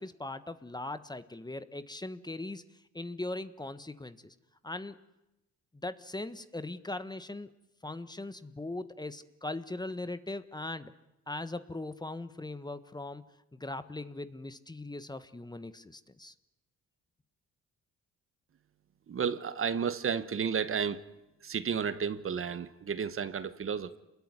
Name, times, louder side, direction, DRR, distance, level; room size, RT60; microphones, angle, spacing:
voice 1, 0.0-2.6 2.9-4.3 4.6-5.0 5.8-7.5 7.8-10.9 11.3-16.3, left 2 dB, 15° left, 1.3 m, -40 dB
voice 2, 19.1-21.0 21.4-24.0, right 7 dB, 45° right, 1.3 m, -32 dB
27.5 x 21.5 x 9.7 m
cardioid pair, 90°, 30 cm